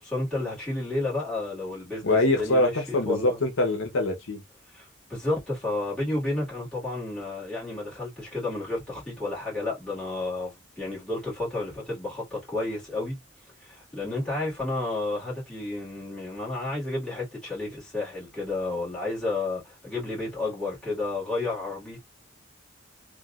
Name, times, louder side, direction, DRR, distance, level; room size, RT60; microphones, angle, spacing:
voice 1, 0.0-3.4 4.7-13.2 13.6-22.0, left 2 dB, 5° left, 1.8 m, -31 dB
voice 2, 2.0-4.4, left 2 dB, 75° left, 0.8 m, -24 dB
3.1 x 2.3 x 2.4 m
head